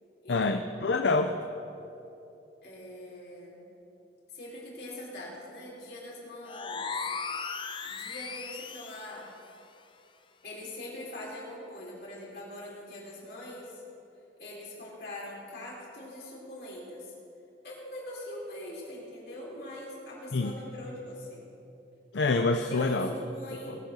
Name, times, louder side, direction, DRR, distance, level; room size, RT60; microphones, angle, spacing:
voice 1, 0.3-1.3 20.3-20.5 22.1-23.1, left 3 dB, 85° left, 6 dB, 0.6 m, -26 dB
voice 2, 2.6-3.6 4.3-7.0 7.8-9.3 10.4-13.8 14.4-17.1 17.6-21.4 22.7-23.8, left 1 dB, 65° left, -5 dB, 3.6 m, -42 dB
sound 1, 6.4-9.2, left 5 dB, 30° left, 0.5 m, -37 dB
19.5 x 6.6 x 6.4 m, 2.9 s
head